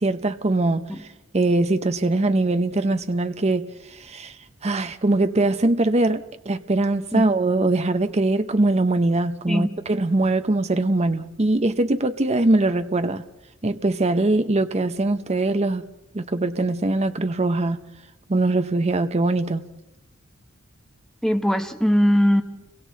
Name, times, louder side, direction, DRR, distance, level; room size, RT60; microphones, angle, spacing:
voice 1, 0.0-1.1 1.3-4.4 4.6-13.2 13.6-15.8 16.1-17.8 18.3-19.7, right 2 dB, 30° right, 0.7 m, -22 dB
voice 2, 21.2-22.4, equal, 5° left, 1.1 m, -20 dB
30.0 x 23.5 x 4.0 m
head